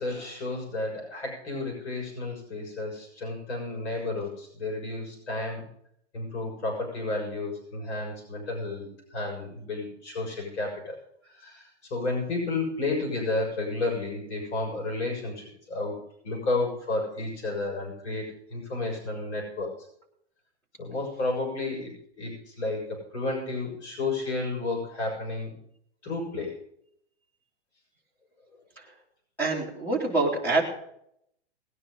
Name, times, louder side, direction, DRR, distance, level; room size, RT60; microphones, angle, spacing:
voice 1, 0.0-5.6 6.1-11.0 11.3-16.0 16.2-19.7 20.8-25.6 26.0-26.6, left 2 dB, 80° left, 0 dB, 6.3 m, -32 dB
voice 2, 29.4-30.6, right 3 dB, 5° left, -2 dB, 2.9 m, -25 dB
20.0 x 10.0 x 3.9 m, 0.72 s
hypercardioid pair, 170°, 33 cm